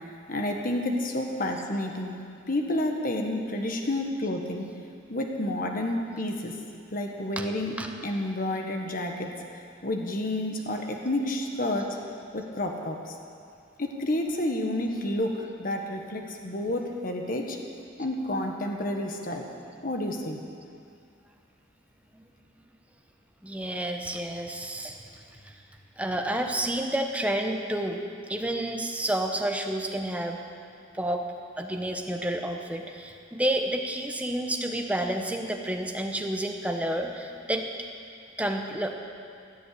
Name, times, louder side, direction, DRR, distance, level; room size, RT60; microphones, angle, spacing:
voice 1, 0.3-2.2 2.5-4.7 5.1-6.6 6.9-9.3 9.8-12.0 12.3-13.1 13.8-17.6 18.0-19.4 19.8-20.4, left 1 dB, 45° left, 2 dB, 1.5 m, -30 dB
voice 2, 23.4-25.0 25.5-25.6 26.0-30.4 30.9-31.2 31.6-37.7 38.4-38.9, right 1 dB, 5° right, 3 dB, 1.1 m, -30 dB
16.0 x 10.0 x 8.5 m, 2.3 s
head